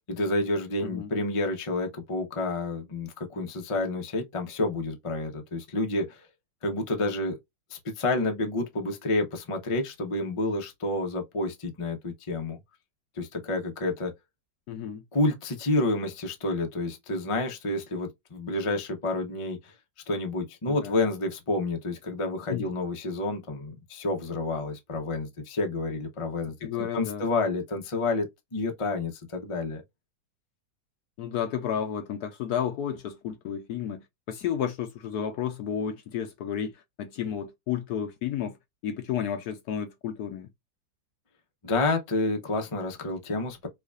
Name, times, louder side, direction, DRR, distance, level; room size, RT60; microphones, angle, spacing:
voice 1, 0.1-6.3 6.6-7.4 7.7-12.6 13.2-14.1 15.1-19.7 20.1-29.8 41.6-43.7, left 2 dB, 45° left, 0.4 m, -29 dB
voice 2, 14.7-15.0 20.7-21.0 22.5-22.7 26.6-27.3 31.2-36.7 37.0-38.6 38.8-40.5, left 9 dB, 70° left, 1.0 m, -32 dB
4.7 x 2.4 x 2.3 m
omnidirectional pair, 2.0 m